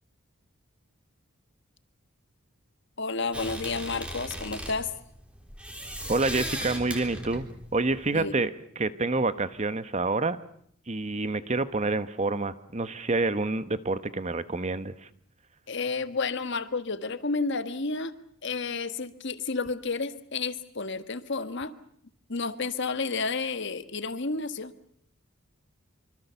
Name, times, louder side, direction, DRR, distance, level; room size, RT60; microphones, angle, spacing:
voice 1, 3.0-4.9 8.1-8.3 15.7-18.1 18.4-21.7 22.3-24.7, left 4 dB, 55° left, 11 dB, 1.5 m, -31 dB
sound 1, 3.3-8.3, equal, 5° right, 3.5 m, -37 dB
voice 2, 6.1-7.5 7.7-8.5 8.8-10.4 10.9-15.1, right 3 dB, 30° right, 13 dB, 1.0 m, -28 dB
25.5 x 25.0 x 7.0 m, 0.67 s
head